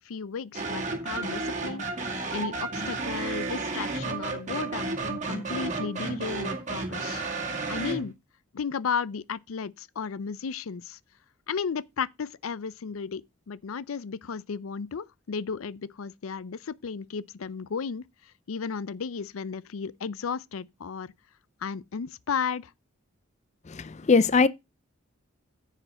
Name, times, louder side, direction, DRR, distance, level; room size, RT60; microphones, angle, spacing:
voice 1, 0.0-1.8 2.3-7.2 7.7-8.1 8.5-11.0 11.5-13.2 13.5-18.0 18.5-21.1 21.6-22.7, left 6 dB, 85° left, 0.5 m, -34 dB
sound 1, 0.5-8.1, right 3 dB, 35° right, 2.1 m, -32 dB
voice 2, 23.7-24.5, left 4 dB, 35° left, 0.4 m, -21 dB
9.8 x 5.0 x 6.4 m
head